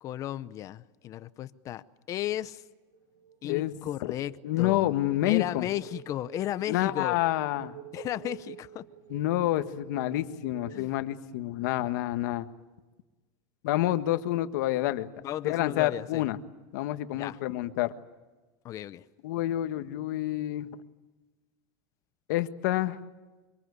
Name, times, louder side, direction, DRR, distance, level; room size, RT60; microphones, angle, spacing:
voice 1, 0.0-1.8 2.1-2.6 3.4-4.9 5.2-7.2 7.9-8.8 10.7-10.9 15.2-16.2 17.2-17.4 18.6-19.0, left 13 dB, 30° left, 0.8 m, -34 dB
sound 1, 2.9-11.8, right 10 dB, 60° right, 2.4 m, -49 dB
voice 2, 4.4-5.7 6.7-7.7 9.1-12.5 13.6-15.1 15.4-16.4 16.7-17.9 19.2-20.7 22.3-23.0, left 15 dB, 70° left, 1.6 m, -28 dB
25.5 x 24.0 x 8.3 m
supercardioid pair, 160°, 10 cm